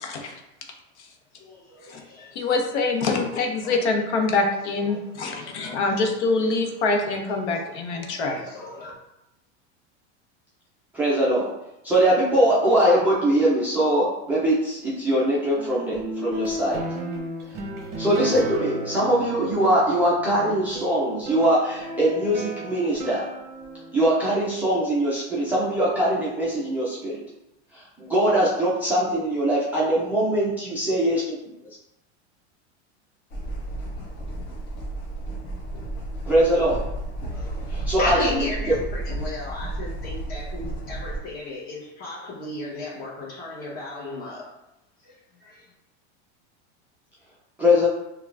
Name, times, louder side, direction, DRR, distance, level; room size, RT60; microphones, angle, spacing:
voice 1, 0.0-0.3 1.9-2.0 2.3-8.4, left 3 dB, 80° left, 3 dB, 0.8 m, -25 dB
voice 2, 1.4-2.5 3.6-3.8 4.3-4.4 4.8-6.1 7.0-7.1 7.5-7.6 7.9-8.9 37.3-44.5 45.0-45.7, left 1 dB, 25° left, -3 dB, 1.0 m, -35 dB
voice 3, 10.9-11.5 11.8-16.8 18.0-23.3 23.9-27.2 27.7-31.2 36.3-36.8 37.7-38.2 47.6-47.9, right 1 dB, 5° right, -9 dB, 0.3 m, -22 dB
sound 1, 15.6-24.3, equal, 30° right, 0.7 m, -35 dB
sound 2, 33.3-41.2, right 1 dB, 50° left, 0.9 m, -32 dB
5.4 x 2.3 x 2.4 m, 0.89 s
supercardioid pair, 155°, 34 cm